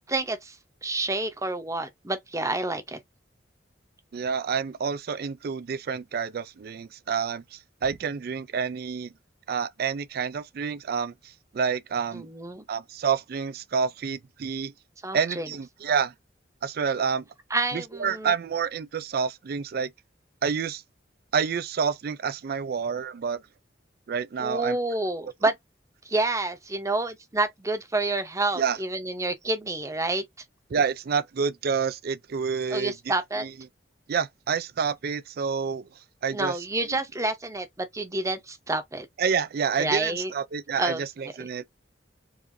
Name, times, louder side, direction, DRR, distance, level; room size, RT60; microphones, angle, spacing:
voice 1, 0.1-0.6 0.8-3.0 12.1-12.6 15.0-15.5 17.5-18.3 24.4-25.5 26.0-30.2 32.7-33.5 36.3-39.1 39.8-40.3 40.8-41.0, right 2 dB, 20° right, 0.8 m, -28 dB
voice 2, 4.1-9.1 9.5-11.1 11.5-12.3 12.7-14.7 15.1-16.1 16.6-17.2 17.7-19.9 20.4-20.8 21.3-23.4 24.1-24.8 25.4-25.5 28.6-28.8 30.7-32.9 33.4-33.5 34.1-35.8 36.2-36.6 36.9-37.0 39.2-41.7, right 6 dB, 60° right, 0.4 m, -28 dB
4.8 x 2.5 x 2.7 m
head